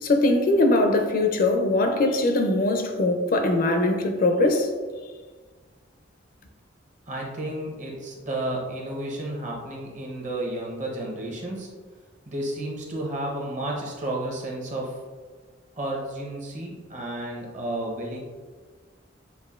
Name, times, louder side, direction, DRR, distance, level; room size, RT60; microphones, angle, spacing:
voice 1, 0.0-4.7, left 2 dB, 50° left, 0.4 m, -21 dB
voice 2, 7.1-11.7 12.3-15.0 15.7-18.2, right 1 dB, 40° right, 0.9 m, -32 dB
6.8 x 2.5 x 2.4 m
head